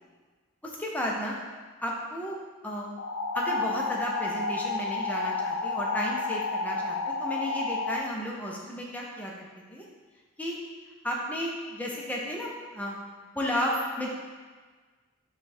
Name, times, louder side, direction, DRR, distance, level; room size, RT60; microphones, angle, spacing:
voice 1, 0.6-1.4 1.8-2.3 2.6-2.9 3.3-9.8 10.4-10.6 11.0-13.0 13.3-14.1, equal, 5° left, -3 dB, 0.5 m, -33 dB
sound 1, 3.0-8.0, left 3 dB, 85° left, 0.4 m, -30 dB
5.1 x 2.3 x 4.3 m, 1.4 s
head